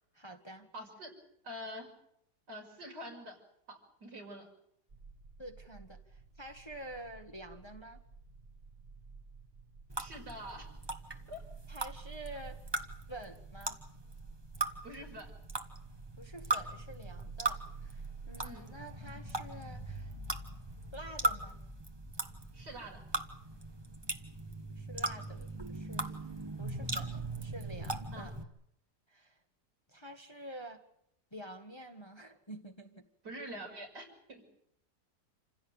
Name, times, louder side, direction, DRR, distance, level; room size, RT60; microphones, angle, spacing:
voice 1, 0.1-0.7 5.4-8.0 11.7-12.6 13.1-13.8 16.2-20.1 20.9-21.6 24.7-26.2 26.6-28.4 29.1-29.4 29.9-30.8 31.3-33.1, right 1 dB, 15° left, 5 dB, 1.5 m, -48 dB
voice 2, 0.7-1.1 1.4-1.9 2.5-3.4 3.7-4.5 10.0-10.7 11.3-11.4 14.8-15.3 18.4-18.7 22.5-23.0 28.1-28.3 33.2-34.4, equal, 80° right, 1 dB, 6.4 m, -45 dB
sound 1, 4.9-18.6, right 5 dB, 35° right, 1.5 m, -51 dB
sound 2, 9.9-28.4, right 2 dB, 15° right, 1.4 m, -39 dB
27.5 x 16.5 x 8.8 m, 0.75 s
omnidirectional pair, 1.8 m